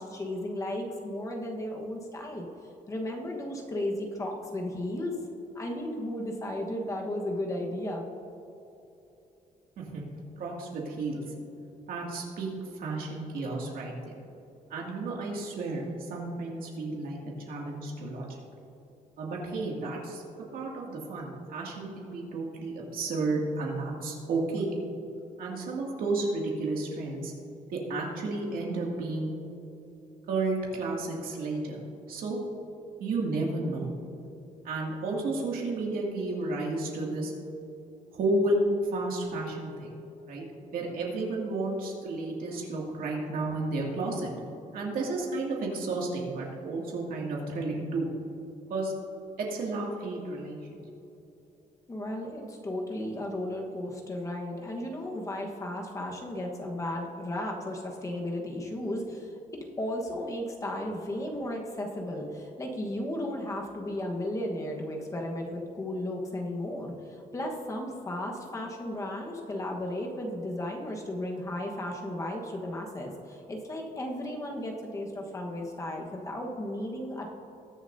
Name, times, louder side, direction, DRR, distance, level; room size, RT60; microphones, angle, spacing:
voice 1, 0.0-2.5 2.9-5.1 5.5-8.1 51.9-59.3 59.8-77.3, left 1 dB, 20° left, 0 dB, 1.2 m, -34 dB
voice 2, 10.4-11.2 11.9-14.2 14.7-18.4 19.2-20.2 20.5-24.7 25.4-27.3 27.7-29.3 30.3-31.8 32.1-32.4 33.0-33.9 34.6-37.3 38.1-39.9 40.3-40.4 40.7-44.3 44.7-48.1 48.7-48.9 49.4-50.8, right 2 dB, 90° right, -2 dB, 2.3 m, -32 dB
21.0 x 7.0 x 2.7 m, 2.9 s
cardioid pair, 165°, 15 cm